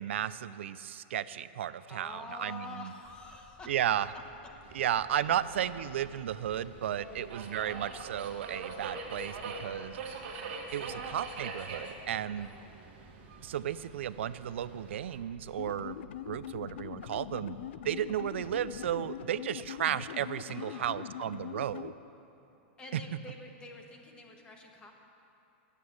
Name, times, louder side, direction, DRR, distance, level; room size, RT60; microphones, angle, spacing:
voice 1, 0.0-2.9 3.7-4.1 4.7-10.0 10.7-12.5 13.4-16.0 16.3-17.6 17.8-21.9 22.9-23.0, right 10 dB, 85° right, 15 dB, 0.4 m, -34 dB
voice 2, 1.9-3.7 5.2-5.6 6.9-7.3 9.4-10.1 12.4-12.8 20.4-21.1 22.8-24.9, left 3 dB, 15° left, 2 dB, 1.1 m, -48 dB
sound 1, 3.0-19.0, right 1 dB, 5° right, 0.6 m, -59 dB
Subway metro underground, 4.6-15.2, right 4 dB, 60° right, 1.5 m, -44 dB
sound 2, 15.6-21.9, left 11 dB, 75° left, 0.4 m, -42 dB
9.5 x 8.2 x 8.6 m, 2.9 s
supercardioid pair, 155°, 6 cm